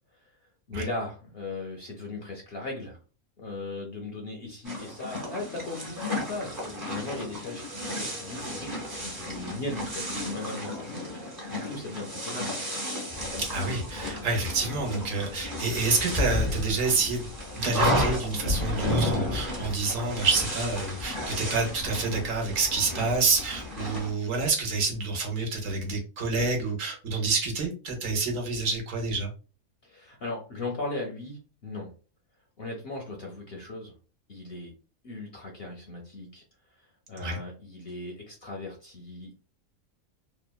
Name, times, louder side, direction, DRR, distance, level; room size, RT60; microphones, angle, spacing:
voice 1, 0.7-3.0 3.4-12.6 29.8-31.9 32.6-33.9 34.3-34.7 35.0-36.4 36.8-39.4, left 2 dB, 60° left, 0 dB, 0.6 m, -38 dB
sound 1, 4.6-24.1, left 1 dB, 20° right, 0.6 m, -32 dB
voice 2, 13.4-17.3 17.6-29.3 37.2-37.4, right 3 dB, 65° right, 1 dB, 1.1 m, -28 dB
2.9 x 2.1 x 2.2 m, 0.35 s
omnidirectional pair, 1.5 m